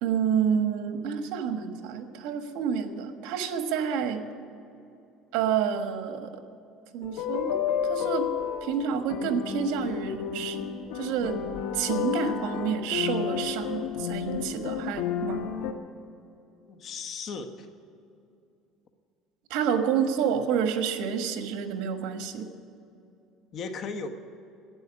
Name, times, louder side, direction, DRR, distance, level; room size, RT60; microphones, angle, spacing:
voice 1, 0.0-4.3 5.3-6.3 6.9-8.3 8.6-10.6 10.9-11.4 11.7-15.4 19.5-22.5, right 7 dB, 80° right, 6 dB, 1.4 m, -29 dB
sound 1, 7.0-15.7, left 9 dB, 85° left, 1.1 m, -31 dB
voice 2, 16.7-17.7 23.5-24.1, left 4 dB, 45° left, 7 dB, 1.2 m, -36 dB
12.0 x 9.7 x 9.8 m, 2.6 s
cardioid pair, 140°, 0 cm